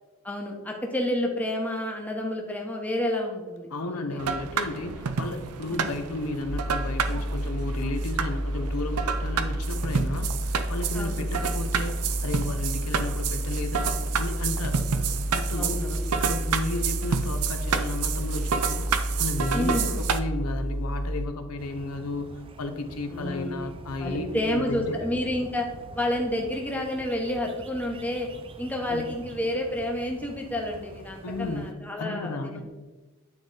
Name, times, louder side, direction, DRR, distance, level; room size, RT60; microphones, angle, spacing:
voice 1, 0.2-4.4 5.7-5.9 10.9-11.3 15.5-16.1 16.7-16.8 19.5-19.9 23.1-23.6 24.0-25.7 25.9-28.3 28.6-32.7, left 1 dB, 5° left, 0 dB, 0.9 m, -30 dB
voice 2, 3.7-14.9 15.3-15.8 16.2-25.0 28.9-29.1 31.2-32.7, left 2 dB, 80° left, 7 dB, 0.7 m, -33 dB
sound 1, 4.2-20.2, right 6 dB, 90° right, 0.5 m, -30 dB
sound 2, 6.4-21.3, equal, 55° left, 1.4 m, -30 dB
sound 3, 21.6-31.7, right 2 dB, 25° right, 0.3 m, -45 dB
9.1 x 3.8 x 3.8 m, 1.2 s
head